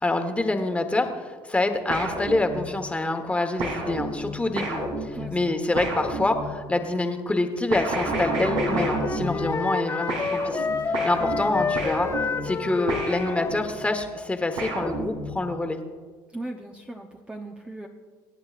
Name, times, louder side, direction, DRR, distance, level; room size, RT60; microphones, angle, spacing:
voice 1, 0.0-10.7 11.0-12.1 12.4-15.8, left 2 dB, 15° left, 5 dB, 1.3 m, -26 dB
sound 1, 1.9-2.9 3.6-6.8 7.7-9.8 10.1-13.8 14.6-15.6, right 1 dB, 90° right, 3.3 m, -31 dB
voice 2, 5.1-5.6 11.2-11.3 16.3-17.9, right 2 dB, 10° right, 1 dB, 0.8 m, -38 dB
Wind instrument woodwind instrument, 8.5-13.8, left 5 dB, 30° left, 0.9 m, -29 dB
24.0 x 9.4 x 2.5 m, 1.5 s
supercardioid pair, 95°, 10 cm